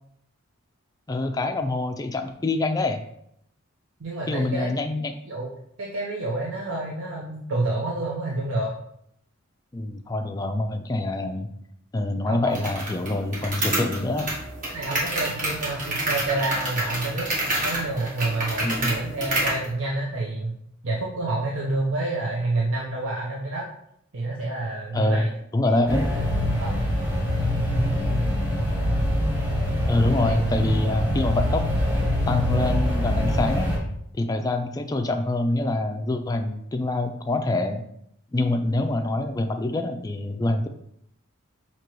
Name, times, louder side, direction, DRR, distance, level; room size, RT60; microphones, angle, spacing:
voice 1, 1.1-3.0 4.3-5.1 9.7-11.5 11.9-14.3 18.6-18.9 24.9-25.3 25.5-26.1 29.9-31.7 32.3-33.7 34.1-37.9 38.3-40.7, left 2 dB, 15° left, 5 dB, 0.3 m, -25 dB
voice 2, 4.0-4.7 5.3-5.5 5.8-8.7 12.3-12.7 14.7-17.3 17.6-20.5 20.8-23.6 24.1-25.3 25.7-26.0 26.6-27.0 27.7-28.4 30.2-30.3, right 2 dB, 70° right, -4 dB, 0.7 m, -28 dB
sound 1, 12.6-19.7, right 1 dB, 40° right, 1.3 m, -28 dB
sound 2, 25.9-33.8, left 1 dB, 10° right, 1.4 m, -24 dB
6.0 x 2.9 x 3.0 m, 0.73 s
head